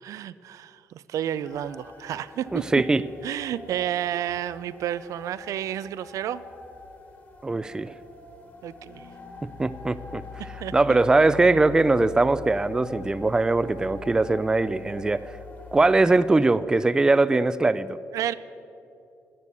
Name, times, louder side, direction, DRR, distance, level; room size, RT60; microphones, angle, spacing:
voice 1, 0.0-2.8 3.2-6.4 8.6-9.1 10.6-11.0 16.0-16.2 18.1-18.3, right 11 dB, 75° right, 15 dB, 0.4 m, -31 dB
sound 1, 1.4-16.3, left 5 dB, 30° left, 2.0 m, -44 dB
voice 2, 2.5-3.0 7.4-7.9 9.6-10.2 10.7-15.2 15.7-18.0, right 3 dB, 15° right, 15 dB, 0.4 m, -21 dB
12.0 x 9.6 x 8.3 m, 2.7 s
cardioid pair, 125°, 6 cm